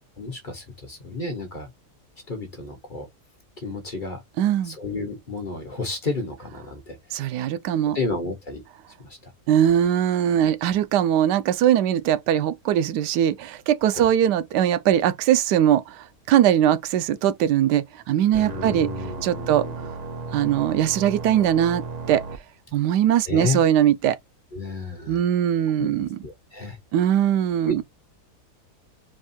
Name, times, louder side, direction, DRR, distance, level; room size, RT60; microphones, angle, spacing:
voice 1, 0.2-1.7 2.3-3.1 3.6-4.2 4.6-7.3 7.9-8.6 9.0-9.3 13.9-14.1 18.3-19.7 23.3-23.6 24.5-25.2 25.8-25.9 26.2-26.8 27.6-27.8, left 3 dB, 35° left, 1.2 m, -31 dB
voice 2, 4.4-4.8 7.1-8.0 9.5-18.9 19.2-19.7 20.3-22.2 22.7-24.2 25.1-26.1 26.9-27.8, right 10 dB, 90° right, 1.2 m, -21 dB
sound 1, 18.3-22.4, right 4 dB, 55° right, 0.4 m, -34 dB
4.6 x 2.2 x 4.3 m
omnidirectional pair, 1.7 m